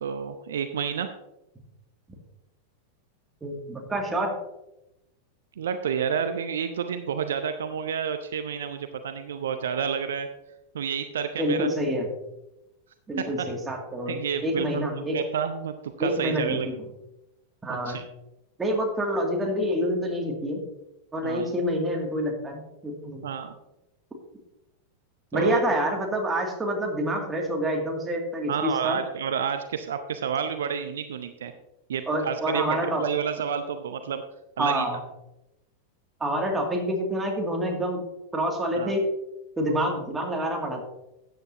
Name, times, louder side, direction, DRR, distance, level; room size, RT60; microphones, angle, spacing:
voice 1, 0.0-1.1 5.6-10.3 10.7-11.7 14.1-16.7 17.7-18.0 21.2-21.5 23.2-23.5 25.3-25.6 28.5-31.5 31.9-34.2 34.6-34.8 38.8-38.9, right 7 dB, 65° right, 9 dB, 0.6 m, -30 dB
voice 2, 3.4-4.3 11.4-12.1 13.1-15.2 16.0-16.8 17.6-18.0 18.6-20.6 21.1-23.3 25.3-29.0 32.1-33.0 34.6-35.0 36.2-38.0 38.3-39.1 39.6-40.8, equal, 10° right, 0 dB, 2.4 m, -27 dB
13.0 x 9.2 x 2.8 m, 0.93 s
figure-of-eight pair, 90°, 0 cm